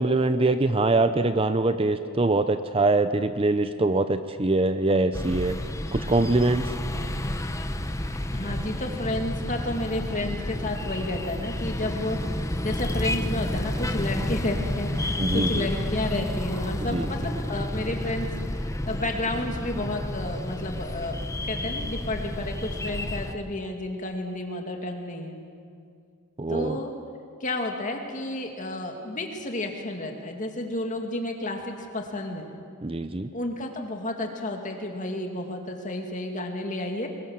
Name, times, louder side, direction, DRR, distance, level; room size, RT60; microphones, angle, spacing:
voice 1, 0.0-5.6 5.9-6.7 15.2-15.7 16.9-17.1 26.4-26.8 32.8-33.3, right 2 dB, 25° right, 10 dB, 0.6 m, -23 dB
sound 1, 5.1-23.3, left 1 dB, 15° left, 0.9 m, -30 dB
voice 2, 8.3-21.2 21.4-25.4 26.5-26.9 27.4-32.5 33.3-37.1, left 1 dB, 35° left, 3 dB, 2.4 m, -31 dB
23.0 x 21.5 x 7.4 m, 2.4 s
head